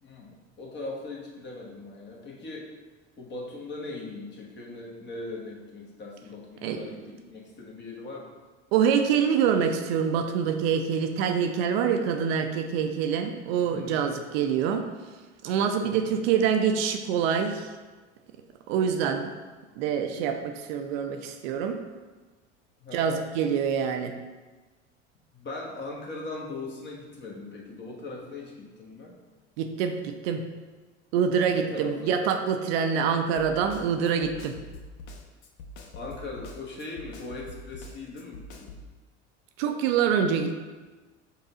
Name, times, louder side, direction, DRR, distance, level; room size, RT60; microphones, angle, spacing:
voice 1, 0.0-2.7 3.2-8.3 13.7-14.2 15.9-16.2 18.7-19.0 22.8-23.2 25.3-29.1 31.5-32.3 35.9-38.8, left 2 dB, 30° left, -1 dB, 1.1 m, -40 dB
voice 2, 8.7-14.9 15.4-17.7 18.7-19.3 19.8-21.8 22.9-24.1 29.6-30.4 31.1-34.6 39.6-40.6, right 7 dB, 60° right, 6 dB, 0.5 m, -25 dB
Snare drum, 33.4-38.9, left 2 dB, 60° left, 0.7 m, -44 dB
5.4 x 2.3 x 3.8 m, 1.3 s
hypercardioid pair, 70°, 35 cm